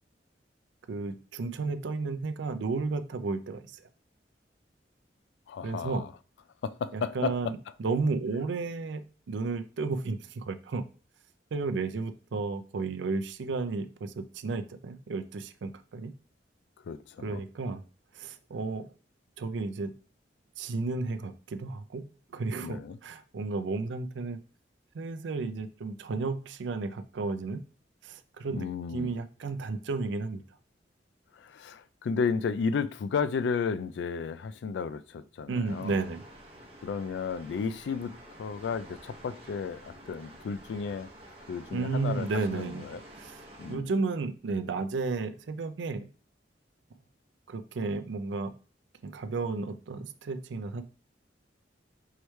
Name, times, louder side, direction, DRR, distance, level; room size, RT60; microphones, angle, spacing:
voice 1, 0.9-3.9 5.6-6.1 6.9-10.8 11.5-16.1 17.2-17.8 18.1-18.9 19.4-19.9 20.6-22.0 22.3-24.4 24.9-27.6 28.0-30.4 35.5-36.2 41.7-42.8 43.1-46.1 47.5-48.5 49.0-50.8, right 3 dB, 85° right, 0.4 m, -33 dB
voice 2, 5.5-6.1 6.6-7.3 16.8-17.4 22.6-23.0 28.5-29.1 31.3-36.0 36.8-38.1 38.4-41.1 41.5-43.0 43.6-43.9, left 5 dB, 75° left, 0.3 m, -33 dB
sound 1, 35.6-43.7, right 1 dB, 35° right, 0.9 m, -50 dB
4.6 x 3.1 x 3.1 m
head